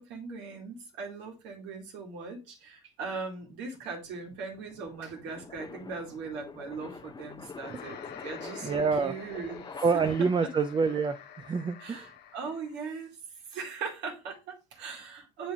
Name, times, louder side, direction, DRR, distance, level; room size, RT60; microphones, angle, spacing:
voice 1, 0.0-9.6 11.8-13.2 13.5-15.5, right 4 dB, 70° right, 2.3 m, -39 dB
sound 1, 3.1-10.7, left 5 dB, 25° left, 0.6 m, -46 dB
sound 2, 7.6-12.9, left 8 dB, 60° left, 0.8 m, -48 dB
voice 2, 8.6-9.1 9.8-12.1, right 5 dB, 25° right, 0.5 m, -27 dB
8.1 x 3.7 x 3.6 m
hypercardioid pair, 70°, 19 cm